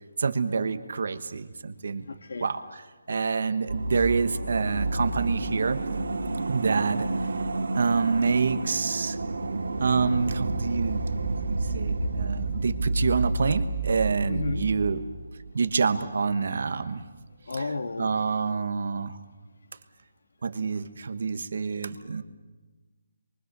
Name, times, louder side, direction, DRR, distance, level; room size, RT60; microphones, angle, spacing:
voice 1, 0.2-2.0 2.4-2.6 3.1-5.8 6.5-7.1 7.7-9.2 9.8-15.0 15.5-17.0 17.6-17.7 18.0-19.1 20.4-22.2, right 5 dB, 45° right, 1.2 m, -27 dB
voice 2, 2.0-2.5 7.6-7.7 14.3-14.7 17.5-18.1, left 3 dB, 60° left, 1.7 m, -33 dB
sound 1, 3.7-16.1 16.4-16.5, right 2 dB, 75° right, 2.7 m, -30 dB
28.5 x 23.5 x 6.8 m
hypercardioid pair, 180°, 0 cm